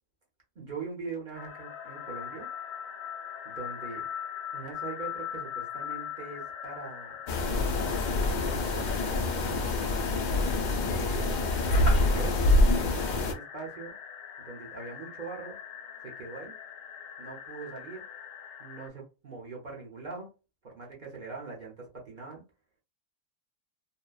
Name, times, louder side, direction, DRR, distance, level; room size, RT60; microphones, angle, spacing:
voice 1, 0.6-2.5 3.4-4.1 4.5-7.2 7.8-9.5 10.9-11.5 12.0-12.4 13.2-14.0 14.4-15.6 16.0-16.5 17.2-18.0 18.6-20.3 20.6-22.4, right 4 dB, 40° right, -2 dB, 0.9 m, -42 dB
sound 1, 1.3-18.9, left 8 dB, 85° left, 1.0 m, -42 dB
sound 2, 7.3-13.3, left 2 dB, 65° left, 0.4 m, -26 dB
2.8 x 2.1 x 2.3 m, 0.29 s
omnidirectional pair, 1.3 m